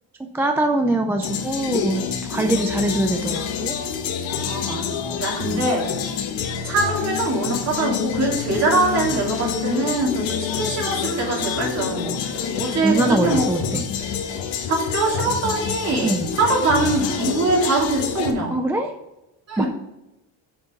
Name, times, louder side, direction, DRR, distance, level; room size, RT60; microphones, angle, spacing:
voice 1, 0.2-3.8 5.5-5.6 12.8-13.8 16.0-16.3 18.5-18.9 19.6-19.7, right 1 dB, 5° right, 4 dB, 0.3 m, -23 dB
sound 1, 1.2-18.3, left 6 dB, 90° left, 1.7 m, -27 dB
voice 2, 4.4-5.9 6.6-13.4 13.7-13.9 14.7-18.6 19.5-19.7, right 3 dB, 35° right, -2 dB, 3.0 m, -23 dB
8.0 x 6.8 x 5.1 m, 0.93 s
cardioid pair, 170°, 44 cm